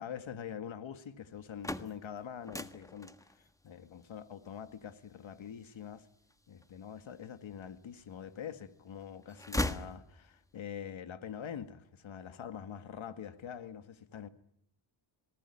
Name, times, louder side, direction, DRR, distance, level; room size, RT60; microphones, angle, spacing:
voice 1, 0.0-6.1 6.5-14.3, left 8 dB, 70° left, 2.1 m, -44 dB
sound 1, 1.3-7.3 7.8-8.7 9.0-10.6, left 1 dB, 5° left, 1.5 m, -40 dB
25.5 x 19.5 x 10.0 m
cardioid pair, 80°, 48 cm